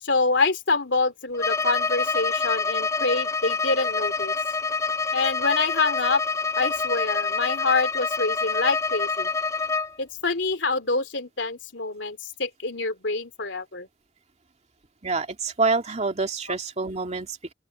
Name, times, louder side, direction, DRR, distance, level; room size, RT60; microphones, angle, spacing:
voice 1, 0.0-4.3 5.1-6.2 6.6-9.3 10.0-13.9 16.5-16.6, left 3 dB, 75° left, 3.1 m, -26 dB
Bowed string instrument, 1.3-9.9, left 4 dB, 15° left, 0.5 m, -26 dB
voice 2, 15.0-17.5, right 4 dB, 40° right, 2.5 m, -27 dB
open air
head